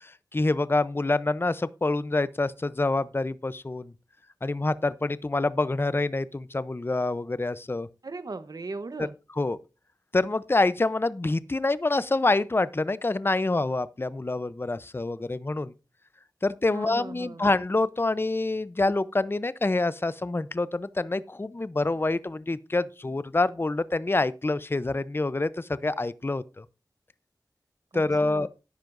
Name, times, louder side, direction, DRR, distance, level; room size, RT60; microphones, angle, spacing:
voice 1, 0.0-3.9 4.4-7.9 9.4-9.6 10.1-15.7 16.4-26.6 27.9-28.5, left 2 dB, 30° left, 0.6 m, -26 dB
voice 2, 8.0-9.1 16.7-17.5 27.9-28.5, right 3 dB, 60° right, 0.9 m, -38 dB
13.0 x 10.5 x 2.6 m
cardioid pair, 45°, 8 cm